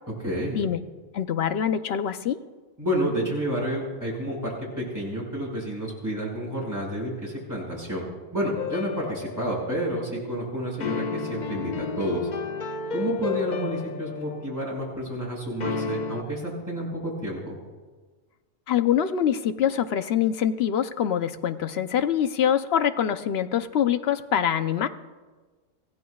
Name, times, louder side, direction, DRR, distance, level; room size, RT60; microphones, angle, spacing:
voice 1, 0.2-0.6 2.8-8.0 8.3-12.3 12.9-17.5, equal, 15° right, -4 dB, 5.8 m, -30 dB
voice 2, 1.1-2.4 18.7-24.9, left 9 dB, 65° left, 10 dB, 0.9 m, -24 dB
sound 1, 8.6-9.9 10.8-14.7 15.6-16.2, left 5 dB, 50° left, 0.6 m, -32 dB
25.5 x 16.5 x 2.3 m, 1.3 s
omnidirectional pair, 1.2 m